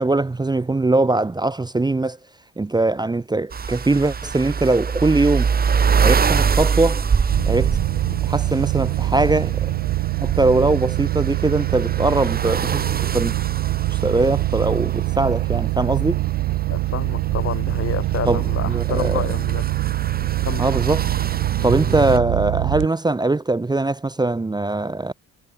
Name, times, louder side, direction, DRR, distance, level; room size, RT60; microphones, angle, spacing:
voice 1, 0.0-2.2 2.6-5.5 6.0-7.0 7.5-7.8 8.2-9.7 10.2-13.3 13.9-16.2 18.3-19.2 20.6-21.1 21.6-25.1, right 2 dB, 15° right, 0.7 m, -21 dB
sound 1, 3.5-22.2, right 6 dB, 30° right, 1.0 m, -25 dB
sound 2, 7.3-22.9, right 20 dB, 85° right, 0.5 m, -24 dB
voice 2, 16.7-19.7 20.4-20.6, left 9 dB, 50° left, 1.1 m, -29 dB
cardioid pair, 90°, 30 cm